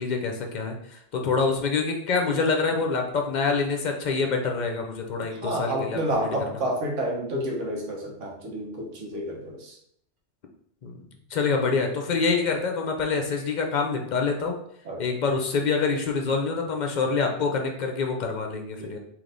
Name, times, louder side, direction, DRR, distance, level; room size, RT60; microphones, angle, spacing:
voice 1, 0.0-6.3 10.8-10.9 11.3-14.6 15.0-19.0, left 4 dB, 50° left, 3 dB, 0.6 m, -26 dB
voice 2, 5.4-9.8 14.8-15.0 18.8-18.9, right 1 dB, 85° right, 0 dB, 1.2 m, -30 dB
3.3 x 3.0 x 3.9 m, 0.70 s
omnidirectional pair, 1.2 m